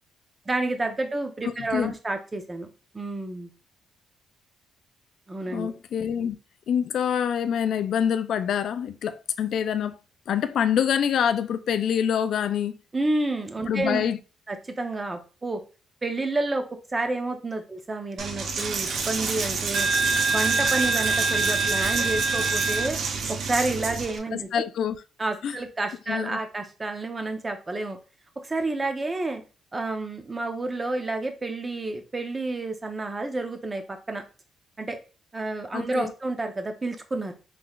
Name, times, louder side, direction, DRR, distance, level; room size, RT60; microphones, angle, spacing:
voice 1, 0.5-2.7 2.9-3.5 5.3-5.7 12.9-14.0 14.5-15.6 16.0-16.6 16.9-19.9 20.3-23.0 23.3-24.6 25.2-28.0 28.4-29.4 29.7-34.2 34.8-35.0 35.3-37.3, right 2 dB, 25° right, 0.7 m, -29 dB
voice 2, 5.5-6.4 6.7-10.0 10.3-12.8 13.7-14.2 24.3-25.0 25.4-25.6 26.1-26.4 35.7-36.1, left 8 dB, 70° left, 0.3 m, -26 dB
Coin (dropping), 18.2-24.2, right 4 dB, 65° right, 0.7 m, -25 dB
3.7 x 3.1 x 2.4 m
cardioid pair, 90°, 0 cm